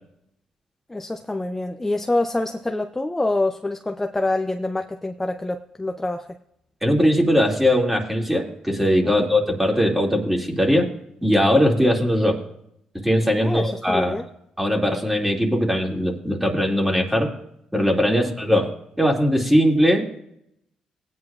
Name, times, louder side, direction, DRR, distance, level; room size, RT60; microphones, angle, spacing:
voice 1, 0.9-6.3 9.0-9.3 13.4-14.2 18.1-18.3, left 2 dB, 15° left, 5 dB, 0.6 m, -26 dB
voice 2, 6.8-10.9 11.2-12.4 13.0-14.2 14.6-17.3 17.7-20.2, equal, 5° right, 1 dB, 2.4 m, -20 dB
19.0 x 9.5 x 2.4 m, 0.75 s
cardioid pair, 95°, 2 cm